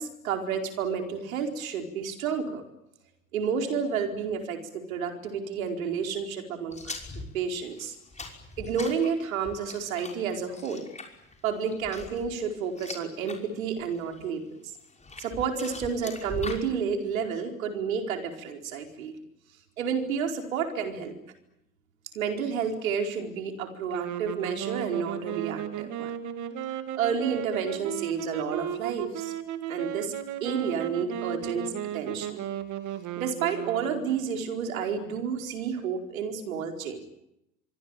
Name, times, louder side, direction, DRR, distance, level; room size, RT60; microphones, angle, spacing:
voice 1, 0.0-2.6 3.3-8.0 8.6-10.8 11.4-14.4 15.2-19.2 19.8-21.1 22.1-26.2 27.0-29.3 29.7-30.1 30.4-31.6 31.9-32.4 33.2-37.0, right 6 dB, 70° right, 4 dB, 4.7 m, -30 dB
sound 1, 6.7-13.4 13.8-14.3 14.8-16.7, left 3 dB, 15° left, 5.9 m, -41 dB
sound 2, 23.9-34.3, right 11 dB, 45° right, 2.4 m, -35 dB
25.5 x 23.5 x 9.1 m, 0.84 s
figure-of-eight pair, 75°, 42 cm